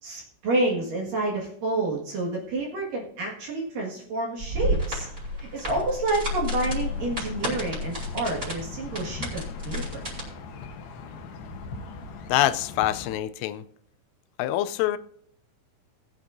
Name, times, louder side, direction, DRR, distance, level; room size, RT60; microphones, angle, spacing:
voice 1, 0.0-5.1 5.4-10.0, right 2 dB, 55° right, 2.6 m, -29 dB
sound 1, 4.4-10.2, left 1 dB, 15° right, 4.7 m, -31 dB
sound 2, 6.6-13.2, left 4 dB, 70° left, 2.6 m, -40 dB
voice 2, 12.3-13.7 14.4-15.0, left 13 dB, 90° left, 3.2 m, -25 dB
20.0 x 8.4 x 2.6 m
omnidirectional pair, 5.7 m